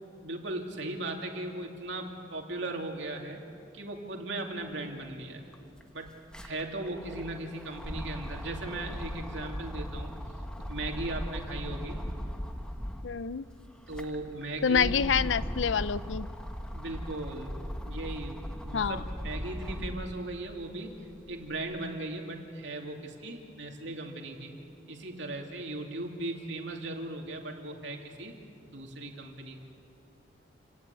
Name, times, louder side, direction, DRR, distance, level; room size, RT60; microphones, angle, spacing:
voice 1, 0.2-3.4 3.7-5.4 5.9-6.1 6.4-10.1 10.7-12.0 13.9-15.0 16.7-21.0 21.3-24.5 24.9-28.4 28.6-29.6, right 2 dB, 70° right, 2 dB, 2.9 m, -38 dB
sound 1, 5.0-5.1 5.4-13.2 13.7-20.2 20.7-21.8, equal, 5° left, 1.2 m, -38 dB
voice 2, 13.0-13.4 14.6-16.3 18.7-19.0, left 6 dB, 90° left, 16 dB, 0.6 m, -27 dB
28.5 x 19.0 x 8.5 m, 2.5 s
head